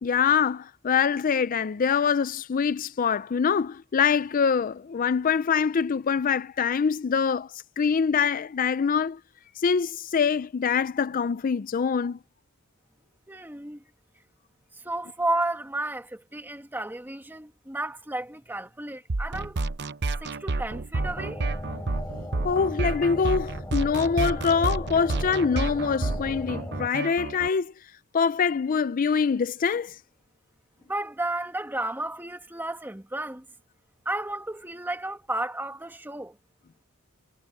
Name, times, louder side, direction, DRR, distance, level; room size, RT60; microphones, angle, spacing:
voice 1, 0.0-9.2 9.6-12.2 22.4-27.7 28.1-30.0, left 6 dB, 40° left, 0.4 m, -24 dB
voice 2, 13.3-13.8 14.7-19.6 20.2-21.4 30.9-33.4 34.0-36.4, right 2 dB, 10° right, 1.5 m, -32 dB
sound 1, 19.1-27.5, right 3 dB, 55° right, 0.8 m, -30 dB
sound 2, 20.9-26.9, left 1 dB, 15° left, 4.3 m, -38 dB
head